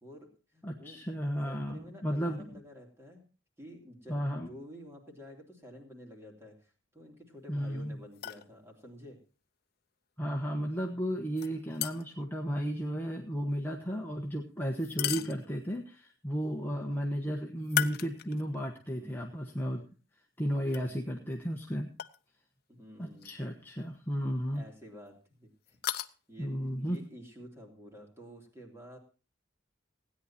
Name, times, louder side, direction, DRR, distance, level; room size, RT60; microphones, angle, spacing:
voice 1, 0.0-1.0 1.4-3.2 3.6-9.2 13.8-14.1 14.9-15.4 16.5-17.0 18.9-19.2 20.7-21.3 22.7-23.3 24.5-25.8 26.3-26.5 26.8-29.0, equal, 15° right, 1 dB, 3.2 m, -51 dB
voice 2, 0.6-2.6 4.1-4.5 7.5-8.0 10.2-19.8 20.4-21.9 23.0-24.6 26.4-27.0, equal, 10° left, 0 dB, 1.2 m, -34 dB
sound 1, 8.1-8.5 11.4-12.2 14.8-15.8 17.6-18.6 19.1-19.2 20.7-20.8 22.0-22.2 23.2-23.4 23.7-23.8 25.7-26.1, left 12 dB, 50° left, 0.7 m, -36 dB
17.0 x 9.7 x 4.3 m, 0.35 s
head